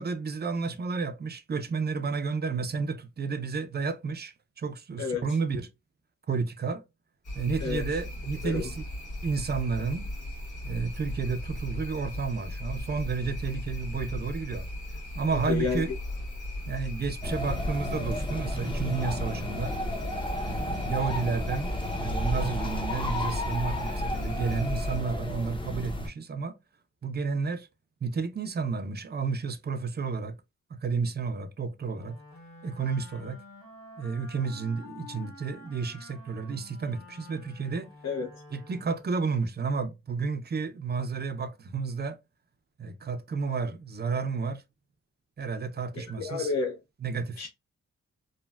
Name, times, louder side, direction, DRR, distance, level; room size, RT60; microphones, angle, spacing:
voice 1, 0.0-5.7 6.3-6.8 7.3-8.8 9.2-10.0 10.6-14.7 15.2-15.9 16.7-19.8 20.4-26.6 27.0-27.7 28.0-30.3 30.7-32.2 32.6-33.4 34.0-37.9 38.5-42.2 42.8-44.6 45.4-46.5 47.0-47.5, right 5 dB, 35° right, 0.5 m, -31 dB
sound 1, 7.2-25.0, left 1 dB, 80° left, 1.6 m, -37 dB
voice 2, 15.4-15.8 38.0-38.3 46.0-46.8 47.4-47.5, left 5 dB, 60° left, 0.7 m, -30 dB
sound 2, 17.2-26.1, left 1 dB, 15° left, 0.7 m, -33 dB
Wind instrument woodwind instrument, 31.9-39.3, left 2 dB, 45° left, 1.6 m, -49 dB
3.2 x 2.2 x 2.2 m
cardioid pair, 80°, 30 cm